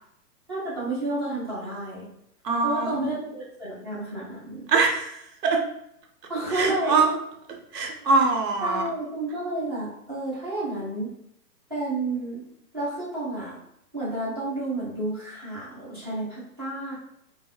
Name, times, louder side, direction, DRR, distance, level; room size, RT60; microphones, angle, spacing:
voice 1, 0.5-2.1 2.6-4.7 6.3-7.0 8.6-11.1 11.7-12.5 12.7-13.6 13.9-16.9, right 2 dB, 20° right, -10 dB, 0.4 m, -31 dB
voice 2, 2.4-3.2 4.7-5.6 6.5-7.1 7.7-8.8, right 4 dB, 90° right, 2 dB, 0.9 m, -23 dB
4.1 x 2.0 x 2.3 m, 0.75 s
hypercardioid pair, 160°, 47 cm